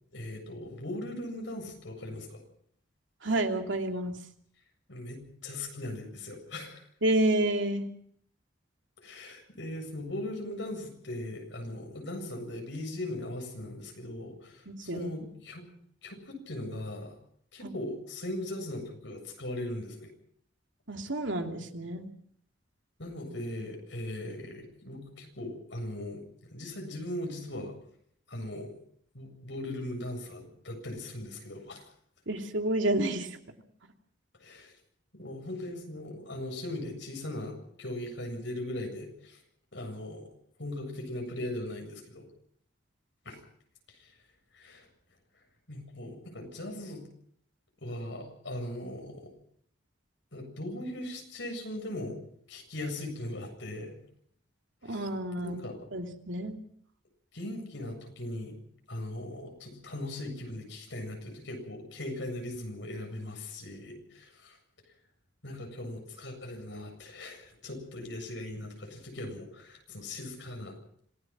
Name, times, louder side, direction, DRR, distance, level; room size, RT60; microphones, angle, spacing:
voice 1, 0.1-2.4 4.9-6.8 9.0-15.6 16.0-17.1 17.5-20.1 23.0-26.2 26.5-27.7 28.3-28.7 29.1-31.9 34.4-34.7 35.1-39.4 39.7-40.3 40.6-42.3 43.2-43.4 44.0-44.1 44.5-44.9 45.7-47.1 47.8-49.3 50.3-52.2 52.5-54.0 54.9-55.1 55.4-55.9 57.3-58.6 58.9-64.6 65.4-70.8, left 1 dB, 70° left, 3 dB, 7.6 m, -39 dB
voice 2, 3.2-4.2 7.0-7.9 14.7-15.1 17.6-17.7 20.9-22.1 32.3-33.3 54.8-55.6 55.9-56.6, right 1 dB, 80° right, 4 dB, 2.7 m, -29 dB
26.5 x 18.0 x 6.0 m, 0.64 s
head